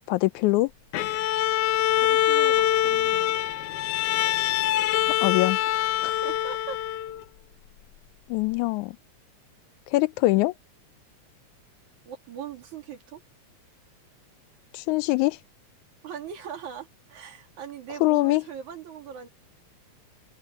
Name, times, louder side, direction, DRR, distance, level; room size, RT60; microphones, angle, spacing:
voice 1, 0.1-0.7 5.2-5.6 6.0-6.1 8.3-9.0 9.9-10.5 14.7-15.4 18.0-18.4, left 20 dB, 90° left, 2.0 m, -23 dB
Bowed string instrument, 0.9-7.2, left 12 dB, 75° left, 1.5 m, -24 dB
voice 2, 2.0-3.3 6.0-6.8 12.0-13.2 16.0-19.3, right 7 dB, 80° right, 4.3 m, -40 dB
open air
omnidirectional pair, 3.3 m